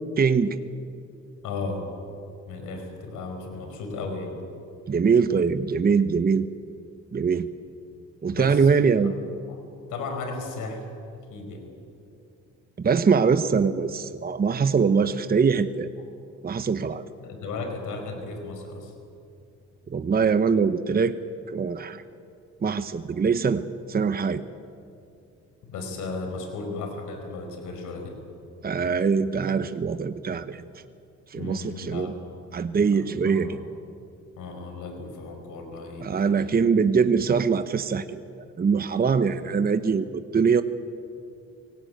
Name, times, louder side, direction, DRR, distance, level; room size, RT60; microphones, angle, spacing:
voice 1, 0.2-0.5 4.9-6.5 7.1-7.5 8.2-9.1 12.8-15.9 16.4-17.0 19.9-21.1 21.5-22.0 22.6-23.6 23.9-24.4 28.6-30.6 31.3-32.1 32.5-33.6 36.0-38.2 38.6-40.6, right 5 dB, 30° right, 11 dB, 0.9 m, -23 dB
voice 2, 1.4-1.9 2.5-4.3 8.3-8.7 9.0-9.1 9.5-9.6 9.9-10.8 11.3-11.7 17.2-18.9 25.7-28.2 31.3-32.2 32.9-33.6 34.4-36.6, left 3 dB, 85° left, 5 dB, 4.8 m, -35 dB
25.0 x 17.5 x 9.1 m, 2.5 s
cardioid pair, 90°, 30 cm